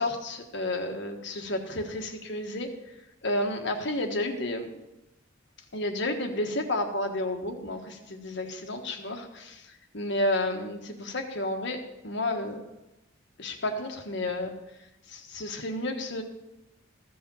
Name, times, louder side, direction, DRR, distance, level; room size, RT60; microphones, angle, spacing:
voice 1, 0.0-2.7 3.2-4.8 5.7-9.6 9.9-12.6 13.4-14.5 15.1-16.2, left 1 dB, 60° left, 4 dB, 1.4 m, -31 dB
14.5 x 5.4 x 7.1 m, 0.97 s
head